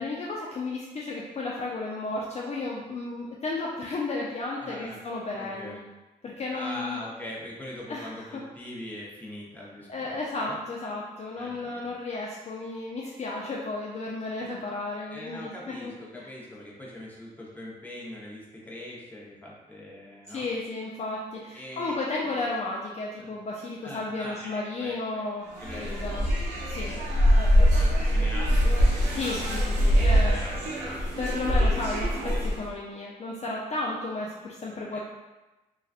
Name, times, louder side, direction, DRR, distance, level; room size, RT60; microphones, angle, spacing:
voice 1, 0.0-5.8 6.2-7.0 7.9-8.3 9.9-16.3 20.3-26.3 26.7-27.0 27.4-27.8 29.1-30.4 31.2-35.0, left 2 dB, 40° left, -3 dB, 0.4 m, -33 dB
voice 2, 4.6-5.0 5.3-5.8 6.5-10.6 11.3-11.9 14.4-14.5 15.1-20.5 21.5-22.3 23.2-23.3 23.8-25.3 25.6-27.3 27.8-28.8 29.8-31.1 34.9-35.0, left 1 dB, 10° left, -5 dB, 0.8 m, -42 dB
sound 1, 25.5-32.7, equal, 85° right, 0.5 m, -23 dB
2.3 x 2.3 x 2.4 m, 1.1 s
supercardioid pair, 55°, 17 cm